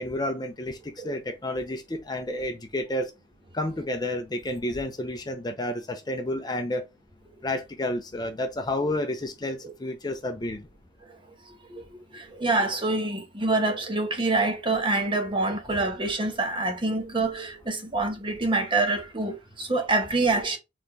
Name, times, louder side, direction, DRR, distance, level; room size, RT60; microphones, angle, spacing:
voice 1, 0.0-3.1 3.5-6.9 7.4-10.7, left 1 dB, 25° left, 0.6 m, -30 dB
voice 2, 12.1-20.6, right 2 dB, 30° right, 1.0 m, -26 dB
4.2 x 3.4 x 3.1 m
head